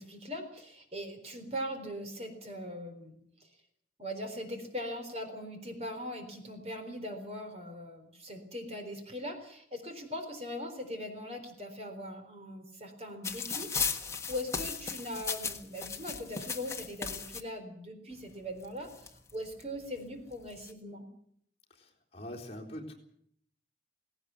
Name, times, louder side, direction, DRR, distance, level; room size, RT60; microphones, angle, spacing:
voice 1, 0.0-3.5 4.0-21.1, equal, 35° right, 5 dB, 4.0 m, -41 dB
sound 1, 13.2-17.4 18.3-18.4 18.6-19.6 20.3-20.7, left 5 dB, 15° left, 1.4 m, -36 dB
voice 2, 21.7-22.9, equal, 35° left, -1 dB, 3.9 m, -44 dB
18.0 x 18.0 x 9.5 m, 0.68 s
head